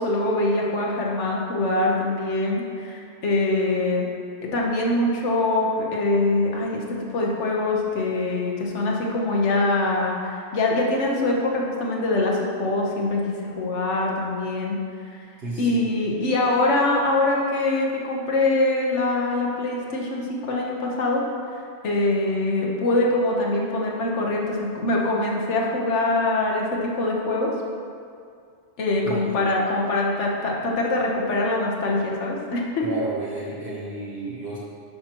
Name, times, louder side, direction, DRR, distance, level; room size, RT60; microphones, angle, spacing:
voice 1, 0.0-4.1 4.5-15.2 15.6-21.2 21.8-27.5 28.8-32.8, left 2 dB, 85° left, -2 dB, 1.4 m, -23 dB
voice 2, 15.4-15.9 29.0-29.4 32.8-34.6, right 1 dB, 60° right, -5 dB, 1.2 m, -32 dB
10.5 x 5.9 x 3.0 m, 2.3 s
omnidirectional pair, 1.2 m